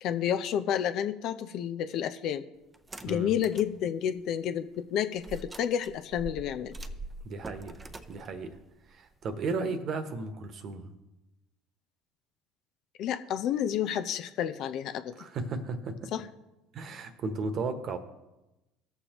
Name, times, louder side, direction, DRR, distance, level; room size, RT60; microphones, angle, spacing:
voice 1, 0.0-2.5 3.0-6.7 13.0-15.1 16.1-16.2, left 9 dB, 60° left, 9 dB, 0.6 m, -30 dB
sound 1, 2.7-3.7 4.2-4.3 5.2-9.5, right 2 dB, 20° right, 0.6 m, -44 dB
voice 2, 7.2-7.7 8.1-8.6 8.9-10.9 15.2-16.1 16.7-18.0, right 4 dB, 50° right, 8 dB, 1.2 m, -35 dB
17.5 x 6.8 x 3.0 m, 1.0 s
hypercardioid pair, 75°, 0 cm